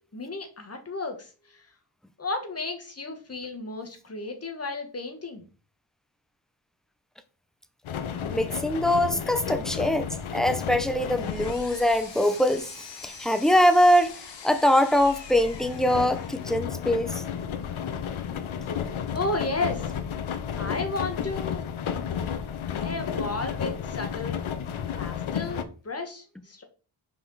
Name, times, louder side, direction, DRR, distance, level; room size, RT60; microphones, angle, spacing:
voice 1, 0.0-1.7 2.2-5.4 19.1-19.9 20.6-21.6 22.8-24.4 25.0-26.6, left 3 dB, 30° left, 1.4 m, -33 dB
sound 1, 7.8-25.6, left 8 dB, 85° left, 0.8 m, -33 dB
voice 2, 8.2-17.2, left 1 dB, ahead, 0.6 m, -23 dB
Power tool, 10.7-16.8, left 5 dB, 60° left, 1.1 m, -45 dB
5.3 x 4.9 x 3.9 m
wide cardioid pair, 110°, 48 cm